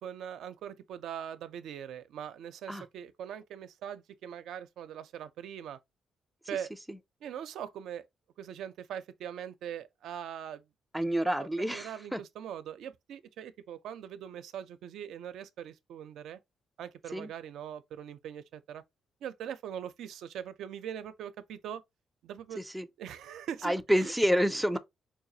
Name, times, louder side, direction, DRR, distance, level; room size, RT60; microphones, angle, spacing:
voice 1, 0.0-5.8 6.5-6.7 7.2-8.1 8.4-10.6 11.3-16.4 16.8-18.8 19.2-21.8 22.2-22.6 23.0-24.1, right 9 dB, 80° right, 0.4 m, -41 dB
voice 2, 10.9-12.2 17.1-17.3 22.6-22.9 23.6-24.8, equal, ahead, 0.4 m, -28 dB
4.4 x 2.4 x 2.7 m
cardioid pair, 125°, 0 cm